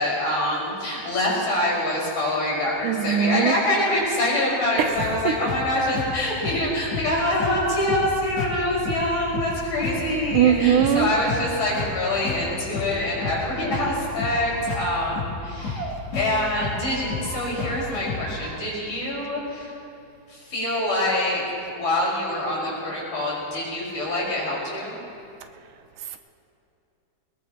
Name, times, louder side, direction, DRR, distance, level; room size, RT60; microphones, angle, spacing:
voice 1, 0.0-19.7 20.3-21.4 21.7-25.0, left 1 dB, 80° left, -6 dB, 6.9 m, -25 dB
voice 2, 2.8-3.6 4.8-5.3 10.3-11.1, right 9 dB, 85° right, 8 dB, 2.3 m, -20 dB
sound 1, 5.0-18.4, left 4 dB, 55° left, 4.0 m, -32 dB
Squeak, 13.9-15.9 16.5-18.6, right 3 dB, 45° right, 2.5 m, -42 dB
22.5 x 21.0 x 3.0 m, 2.7 s
omnidirectional pair, 3.5 m